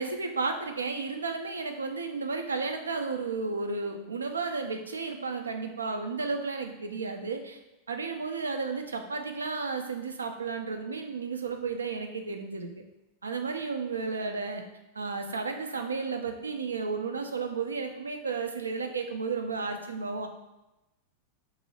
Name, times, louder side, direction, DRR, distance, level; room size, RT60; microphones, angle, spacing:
voice 1, 0.0-7.6 7.9-12.7 13.2-14.6 14.9-20.3, right 4 dB, 75° right, 5 dB, 0.4 m, -33 dB
2.9 x 2.7 x 4.0 m, 0.96 s
figure-of-eight pair, 90°, 0 cm